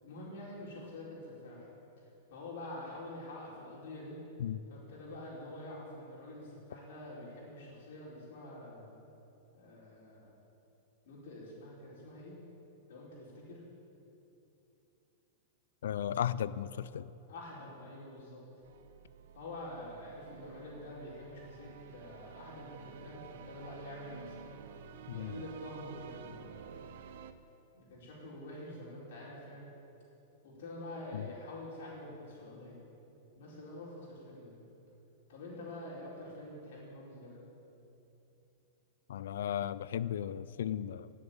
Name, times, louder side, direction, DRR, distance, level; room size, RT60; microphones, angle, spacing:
voice 1, 0.0-1.7 2.0-4.2 4.7-8.9 9.5-10.3 11.0-12.4 12.9-13.6 17.3-18.4 19.3-24.6 24.8-26.8 27.7-29.7 30.4-32.8 33.3-34.6 35.3-37.4, left 1 dB, 65° left, -5 dB, 4.3 m, -47 dB
voice 2, 15.8-17.1 25.1-25.4 31.1-31.3 39.1-41.1, left 10 dB, 80° left, 17 dB, 0.4 m, -35 dB
sound 1, 18.6-27.3, right 8 dB, 65° right, 0.8 m, -51 dB
17.5 x 7.1 x 9.0 m, 2.9 s
supercardioid pair, 165°, 0 cm